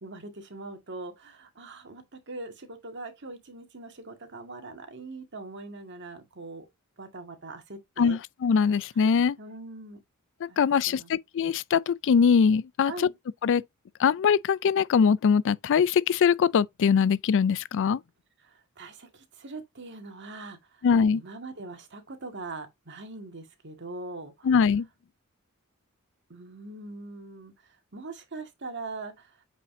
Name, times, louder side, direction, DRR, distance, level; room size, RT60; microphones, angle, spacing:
voice 1, 0.0-6.7 7.0-8.2 9.4-10.0 10.5-10.6 10.9-11.2 12.8-13.1 18.4-20.8 21.1-24.5 26.3-29.4, right 3 dB, 55° right, 1.9 m, -42 dB
voice 2, 8.0-9.4 10.6-13.1 13.4-13.6 14.0-18.0 20.8-21.2 24.4-24.9, left 6 dB, 60° left, 0.4 m, -22 dB
8.4 x 5.1 x 2.7 m
head